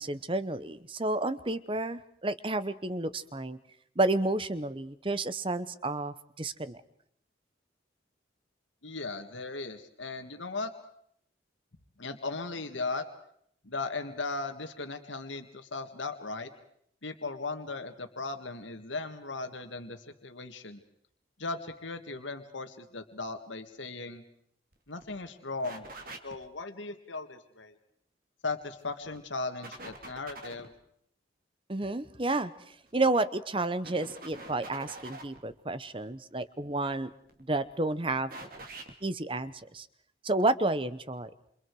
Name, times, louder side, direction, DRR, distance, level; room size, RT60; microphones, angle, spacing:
voice 1, 0.0-3.6 4.0-6.8 31.7-37.1 37.5-38.3 39.0-39.9 40.2-41.3, right 2 dB, 25° right, 14 dB, 0.9 m, -31 dB
voice 2, 8.8-10.7 12.0-13.1 13.6-16.5 17.0-20.8 21.4-24.2 24.9-25.9 26.2-27.7 28.4-30.7, left 3 dB, 80° left, 7 dB, 1.9 m, -37 dB
sound 1, 24.7-24.8 25.0-25.1 25.6-26.4 28.6-29.2 29.6-30.7 32.9-33.2 33.8-35.4 37.1-37.6 38.3-38.9, right 2 dB, 50° right, 2.9 m, -45 dB
28.5 x 27.0 x 4.8 m, 0.69 s
head